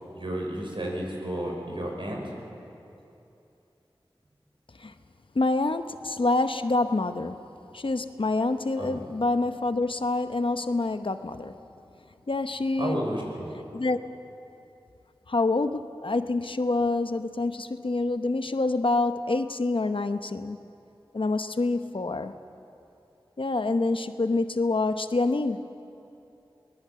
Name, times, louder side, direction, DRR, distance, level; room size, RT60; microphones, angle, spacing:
voice 1, 0.1-2.3 8.8-9.0 12.8-13.5, right 1 dB, 65° right, -1 dB, 5.6 m, -32 dB
voice 2, 5.3-7.4 7.7-11.5 12.3-13.0 13.7-14.0 15.3-20.6 21.1-22.3 23.4-25.7, left 2 dB, 65° left, 9 dB, 0.9 m, -26 dB
23.5 x 19.5 x 7.6 m, 2.8 s
wide cardioid pair, 55°, 9 cm